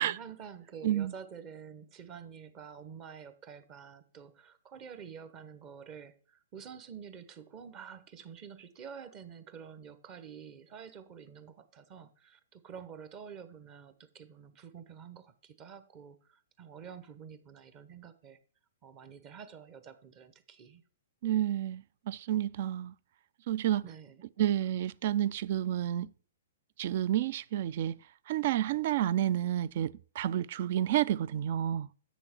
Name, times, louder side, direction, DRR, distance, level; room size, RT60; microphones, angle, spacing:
voice 1, 0.0-18.4 18.8-20.8 23.8-24.2, right 7 dB, 30° right, 0.9 m, -48 dB
voice 2, 21.2-22.9 23.5-23.8 24.4-26.1 26.8-27.9 28.3-31.9, right 11 dB, 55° right, 0.3 m, -30 dB
8.1 x 6.3 x 4.4 m
hypercardioid pair, 130°, 0 cm